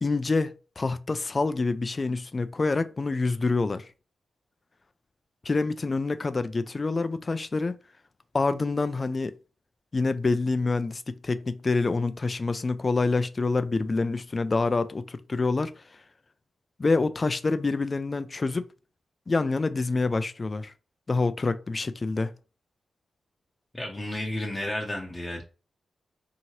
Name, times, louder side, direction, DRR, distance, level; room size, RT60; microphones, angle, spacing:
voice 1, 0.0-3.9 5.4-7.8 8.3-9.3 9.9-15.7 16.8-18.7 19.3-20.7 21.1-22.3, left 3 dB, 40° left, 0.3 m, -26 dB
voice 2, 23.7-25.4, left 1 dB, 25° left, 0.7 m, -32 dB
2.8 x 2.6 x 2.9 m
supercardioid pair, 40°, 0 cm